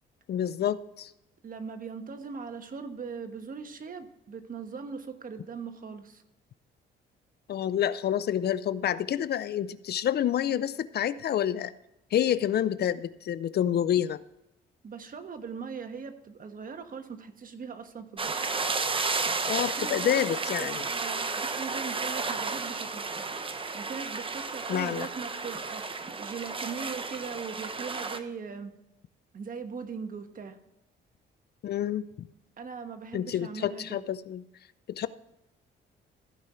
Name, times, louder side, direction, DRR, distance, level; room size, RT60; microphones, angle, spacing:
voice 1, 0.3-1.1 7.5-11.7 12.1-14.2 19.5-20.9 24.7-25.1 31.6-32.3 33.1-34.4 34.9-35.1, left 10 dB, 55° left, 16 dB, 0.5 m, -28 dB
voice 2, 1.4-6.2 14.8-18.5 19.8-23.4 23.7-28.7 29.3-30.6 32.6-34.0, right 5 dB, 45° right, 8 dB, 1.2 m, -40 dB
sound 1, 18.2-28.2, right 4 dB, 25° right, 0.9 m, -32 dB
15.0 x 5.3 x 4.3 m, 0.91 s
cardioid pair, 90°, 20 cm